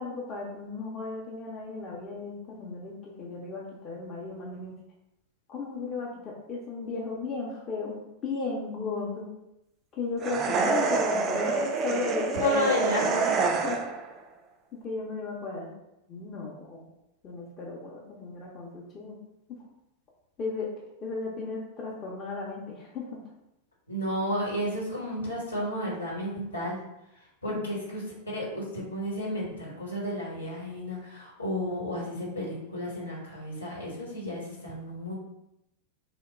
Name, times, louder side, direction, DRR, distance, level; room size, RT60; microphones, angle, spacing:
voice 1, 0.0-4.7 5.5-9.3 9.9-12.4 13.6-13.8 14.7-15.7 16.1-16.9 17.2-19.2 20.4-20.7 21.0-23.2 27.5-27.6, left 3 dB, 30° left, -3 dB, 0.6 m, -35 dB
sound 1, 10.2-14.1, right 4 dB, 30° right, 0.3 m, -27 dB
voice 2, 12.4-13.3 23.9-26.8 27.4-35.1, left 1 dB, 75° left, -4 dB, 1.1 m, -32 dB
2.9 x 2.2 x 3.3 m, 0.86 s
figure-of-eight pair, 90°, 0 cm